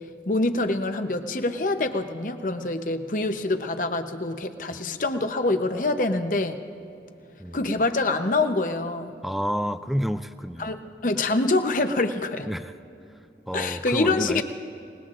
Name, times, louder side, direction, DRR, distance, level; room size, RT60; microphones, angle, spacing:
voice 1, 0.3-6.6 7.5-9.2 10.6-12.5 13.5-14.4, left 2 dB, 45° left, 8 dB, 0.8 m, -25 dB
voice 2, 9.2-10.7 12.5-12.7 13.5-14.4, equal, ahead, 11 dB, 0.4 m, -29 dB
27.0 x 19.5 x 2.5 m, 2.7 s
head